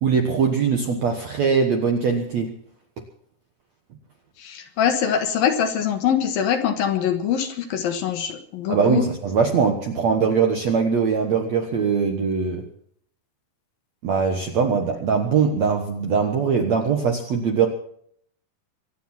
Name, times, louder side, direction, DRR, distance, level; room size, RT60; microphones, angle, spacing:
voice 1, 0.0-2.5 8.7-12.7 14.0-17.7, right 6 dB, 65° right, 4 dB, 1.8 m, -21 dB
voice 2, 4.4-9.0, left 8 dB, 65° left, 7 dB, 2.8 m, -23 dB
24.5 x 9.4 x 5.9 m, 0.65 s
omnidirectional pair, 5.0 m